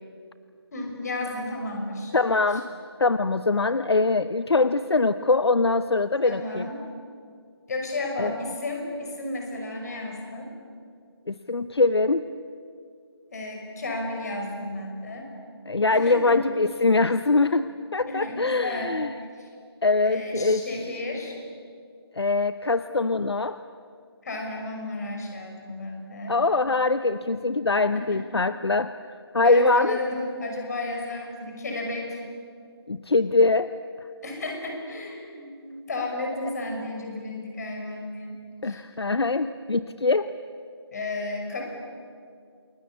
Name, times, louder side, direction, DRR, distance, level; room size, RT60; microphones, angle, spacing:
voice 1, 0.7-2.1 6.2-6.8 7.7-10.5 13.3-15.3 15.9-16.4 18.1-18.9 19.4-19.5 20.0-21.4 24.2-26.4 27.9-28.4 29.4-32.2 34.2-38.3 38.6-38.8 40.9-41.7, left 2 dB, 40° left, 2 dB, 6.0 m, -33 dB
voice 2, 2.1-2.7 3.0-6.7 8.2-8.3 11.3-12.3 15.7-19.1 19.8-20.7 22.2-23.6 26.3-28.9 29.3-30.0 32.9-33.7 38.6-40.3, left 3 dB, 70° left, 12 dB, 0.9 m, -23 dB
28.5 x 21.5 x 8.5 m, 2.3 s
figure-of-eight pair, 160°, 14 cm